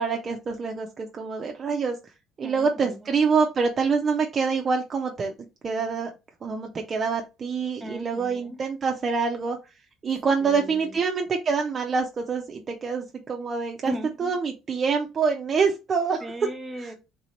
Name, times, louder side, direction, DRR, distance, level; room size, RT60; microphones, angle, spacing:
voice 1, 0.0-2.0 2.4-5.3 5.6-6.1 6.4-9.6 10.0-13.9 14.2-16.2 16.8-16.9, right 5 dB, 40° right, 0.5 m, -26 dB
voice 2, 2.4-3.1 7.8-8.6 10.4-11.0 13.8-14.4 16.2-16.9, equal, 20° right, 1.1 m, -37 dB
3.3 x 2.8 x 3.0 m
supercardioid pair, 75°, 0 cm